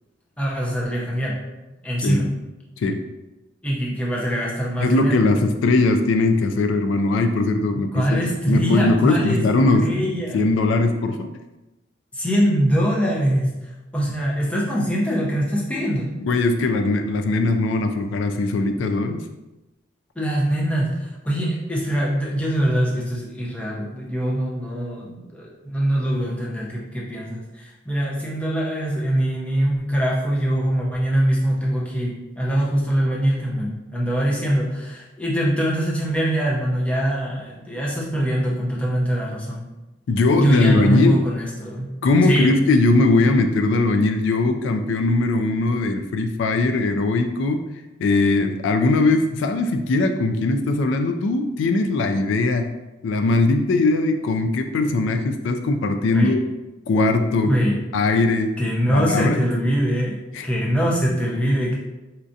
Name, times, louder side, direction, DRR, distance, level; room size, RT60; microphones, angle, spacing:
voice 1, 0.4-1.4 1.8-2.4 3.6-5.4 7.9-10.4 12.1-16.1 20.2-39.6 40.3-41.9 42.2-42.5 56.1-56.3 57.4-57.8 58.6-61.7, equal, 5° left, -4 dB, 0.5 m, -23 dB
voice 2, 4.8-9.8 10.3-11.3 16.2-19.2 40.1-41.2 42.0-47.6 48.0-52.7 53.0-56.4 56.9-57.5 57.9-58.5 58.9-59.4 60.3-60.5, left 3 dB, 80° left, 7 dB, 0.3 m, -20 dB
4.3 x 2.4 x 2.6 m, 1.0 s
head